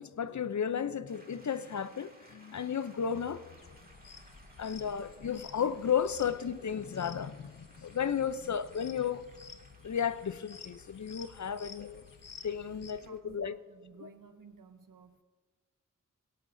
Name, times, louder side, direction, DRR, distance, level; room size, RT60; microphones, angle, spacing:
voice 1, 0.0-3.5 4.6-9.3 9.8-12.0 12.4-13.5 14.0-14.1, left 8 dB, 60° left, 0.5 m, -33 dB
sound 1, 1.1-13.2, right 1 dB, 30° right, 2.0 m, -61 dB
sound 2, 3.6-12.9, left 6 dB, 80° left, 0.9 m, -53 dB
voice 2, 12.7-15.2, right 4 dB, 85° right, 0.8 m, -55 dB
24.5 x 8.5 x 2.6 m
wide cardioid pair, 60°, 32 cm